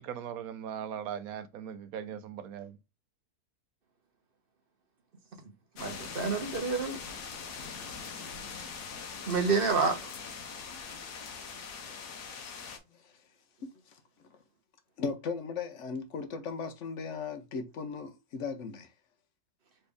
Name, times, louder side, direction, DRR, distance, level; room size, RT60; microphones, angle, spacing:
voice 1, 0.0-2.8, right 9 dB, 70° right, 1.0 m, -39 dB
sound 1, 5.8-12.8, left 5 dB, 85° left, 1.4 m, -42 dB
voice 2, 5.8-7.0 9.3-10.1, right 4 dB, 40° right, 1.1 m, -28 dB
voice 3, 13.6-14.0 15.0-18.9, left 5 dB, 60° left, 0.9 m, -37 dB
4.1 x 3.3 x 3.3 m
omnidirectional pair, 1.7 m